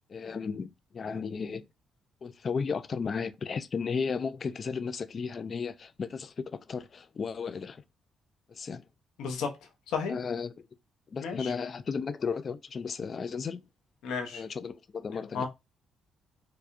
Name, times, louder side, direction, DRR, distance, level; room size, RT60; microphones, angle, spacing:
voice 1, 0.1-1.6 2.2-7.8 8.5-8.9 10.1-10.5 11.1-13.6 14.3-15.5, left 5 dB, 45° left, 0.4 m, -34 dB
voice 2, 9.2-9.6 9.9-10.2 11.2-11.5 14.0-14.4 15.3-15.5, left 5 dB, 85° left, 0.8 m, -32 dB
4.7 x 2.3 x 2.5 m
cardioid pair, 90°, 0 cm